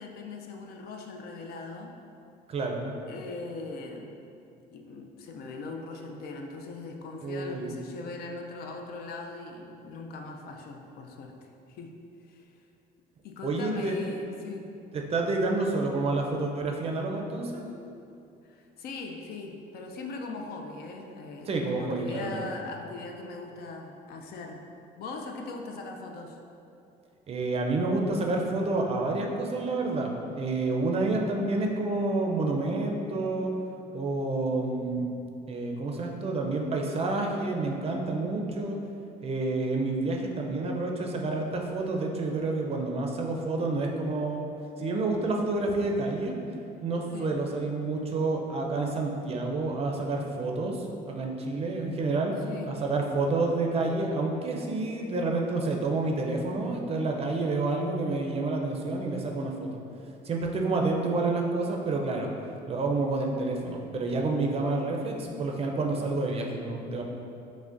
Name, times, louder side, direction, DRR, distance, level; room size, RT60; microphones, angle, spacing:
voice 1, 0.0-2.0 3.1-4.2 4.7-11.9 12.2-12.5 13.2-14.7 18.4-24.6 25.0-26.4 47.1-47.3 52.4-52.8, left 3 dB, 65° left, 3 dB, 0.4 m, -40 dB
voice 2, 2.5-2.9 7.2-7.7 13.4-13.9 14.9-17.6 21.5-22.5 27.3-33.5 33.9-35.1 35.5-38.8 39.2-44.5 44.8-46.4 46.8-52.3 52.7-59.7 60.2-62.3 62.7-67.0, right 3 dB, 35° right, 1 dB, 0.4 m, -29 dB
5.8 x 2.1 x 2.5 m, 2.7 s
cardioid pair, 110°, 17 cm